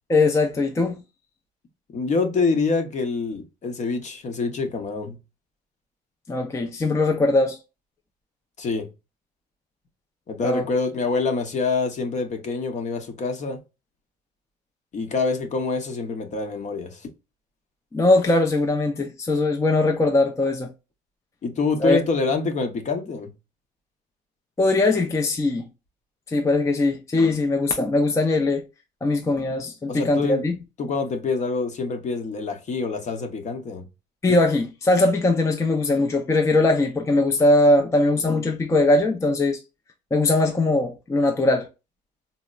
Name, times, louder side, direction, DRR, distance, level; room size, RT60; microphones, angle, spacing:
voice 1, 0.1-1.0 6.3-7.6 10.4-10.7 17.9-20.7 21.8-22.0 24.6-25.7 26.3-28.6 29.0-30.5 34.2-39.6 40.1-41.7, left 2 dB, 15° left, 0.5 m, -20 dB
voice 2, 1.9-5.2 8.6-8.9 10.3-13.6 14.9-17.1 21.4-23.3 29.9-30.4 30.8-33.9, left 4 dB, 45° left, 0.8 m, -26 dB
4.0 x 2.0 x 2.2 m
cardioid pair, 110°, 17 cm